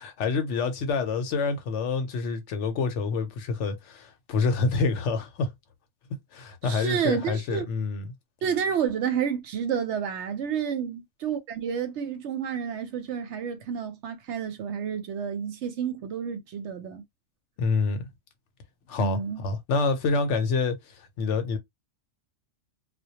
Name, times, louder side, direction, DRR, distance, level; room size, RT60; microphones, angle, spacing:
voice 1, 0.0-5.5 6.3-8.0 17.6-18.1 18.9-20.8 21.2-21.6, left 4 dB, 70° left, 0.9 m, -27 dB
voice 2, 6.6-7.7 8.4-17.0 19.0-19.5, right 7 dB, 70° right, 0.8 m, -30 dB
2.2 x 2.1 x 2.8 m
omnidirectional pair, 1.4 m